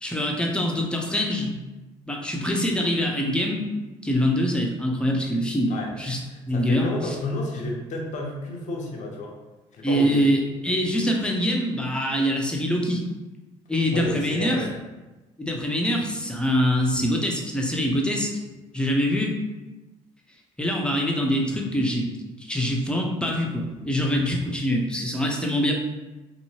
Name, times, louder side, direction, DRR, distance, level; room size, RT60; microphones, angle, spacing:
voice 1, 0.0-1.6 2.1-6.2 6.5-6.9 9.8-13.0 13.7-14.6 15.4-18.3 18.7-19.4 20.6-22.1 22.4-25.7, equal, 5° left, -1 dB, 0.7 m, -24 dB
voice 2, 6.3-9.3 9.7-10.4 13.9-14.7, left 2 dB, 55° left, 0 dB, 0.7 m, -31 dB
2.8 x 2.6 x 2.8 m, 1.1 s
hypercardioid pair, 60°, 15 cm